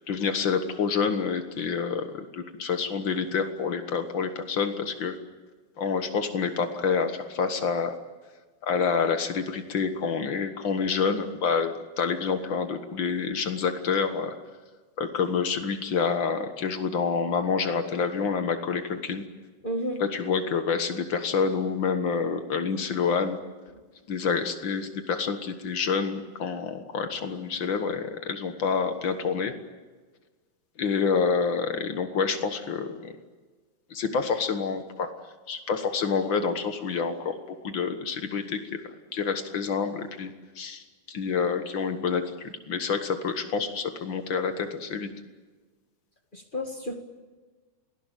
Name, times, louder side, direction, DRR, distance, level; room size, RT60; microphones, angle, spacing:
voice 1, 0.0-5.2 5.8-8.0 8.6-14.3 15.0-19.2 20.1-23.4 24.1-29.5 30.8-33.1 33.9-35.1 35.5-38.8 39.1-45.1, left 5 dB, 75° left, 7 dB, 1.1 m, -28 dB
voice 2, 19.6-20.0 46.3-46.9, equal, 35° left, 3 dB, 0.8 m, -31 dB
29.5 x 19.0 x 9.2 m, 1.4 s
omnidirectional pair, 4.4 m